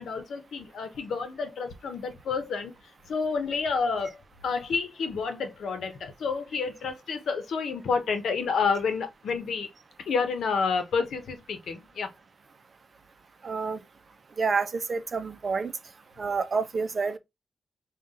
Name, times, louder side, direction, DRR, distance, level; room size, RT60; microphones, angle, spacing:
voice 1, 0.0-2.7 3.0-9.7 10.1-12.1, left 5 dB, 80° left, 0.9 m, -29 dB
voice 2, 13.4-13.8 14.4-15.7 16.2-17.2, right 4 dB, 40° right, 0.6 m, -28 dB
5.7 x 2.4 x 3.7 m
wide cardioid pair, 150°, 0 cm